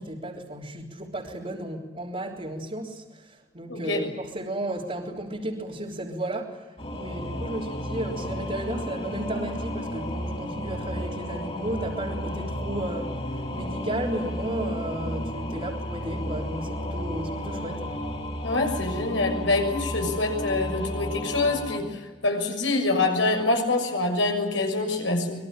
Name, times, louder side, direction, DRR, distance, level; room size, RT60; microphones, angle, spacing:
voice 1, 0.0-6.6 6.9-18.0, right 1 dB, 35° right, -5 dB, 3.5 m, -34 dB
voice 2, 3.7-4.1 18.4-25.4, left 2 dB, 75° left, 4 dB, 6.6 m, -25 dB
Singing / Musical instrument, 6.8-21.8, equal, 30° left, 4.9 m, -33 dB
25.5 x 22.5 x 8.9 m, 1.2 s
head